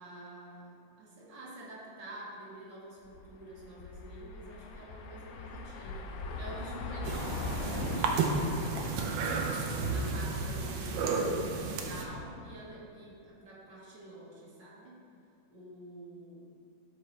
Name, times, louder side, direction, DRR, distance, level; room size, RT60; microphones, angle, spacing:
voice 1, 0.0-8.9 9.5-15.0 15.5-16.5, right 1 dB, 75° right, -6 dB, 2.2 m, -47 dB
sound 1, 3.0-12.3, left 3 dB, 70° left, 0.9 m, -42 dB
sound 2, 7.0-12.1, right 4 dB, 90° right, 1.4 m, -32 dB
12.0 x 4.2 x 3.2 m, 2.4 s
omnidirectional pair, 2.0 m